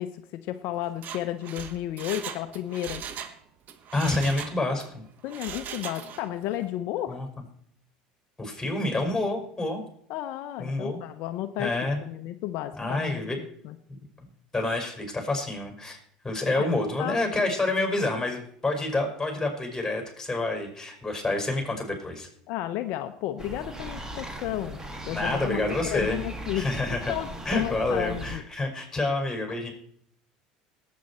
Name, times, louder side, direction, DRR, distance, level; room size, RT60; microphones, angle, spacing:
voice 1, 0.0-3.0 5.2-7.2 10.1-13.8 16.5-17.2 22.5-24.8 25.1-28.4, left 13 dB, 65° left, 8 dB, 0.7 m, -33 dB
Mechanisms, 0.9-3.4 3.7-4.9 5.3-6.3 6.6-6.7, right 8 dB, 50° right, 1.3 m, -39 dB
voice 2, 3.9-5.0 7.1-7.3 8.4-9.8 10.6-11.0 11.6-12.0 12.8-13.4 14.5-16.0 16.2-22.3 25.1-26.2 26.5-27.1 27.5-29.7, left 2 dB, 10° left, 2 dB, 5.3 m, -28 dB
sound 1, 23.4-28.4, right 1 dB, 15° right, 2.0 m, -38 dB
18.5 x 8.5 x 4.3 m, 0.66 s
hypercardioid pair, 80°, 4 cm